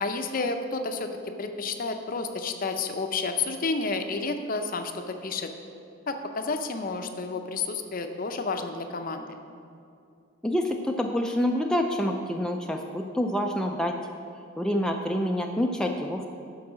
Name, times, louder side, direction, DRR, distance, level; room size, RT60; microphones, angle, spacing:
voice 1, 0.0-5.5 6.1-9.3, left 4 dB, 45° left, 7 dB, 0.6 m, -30 dB
voice 2, 10.4-13.9 14.4-16.3, equal, 5° left, 2 dB, 0.4 m, -27 dB
11.0 x 4.7 x 6.2 m, 2.5 s
head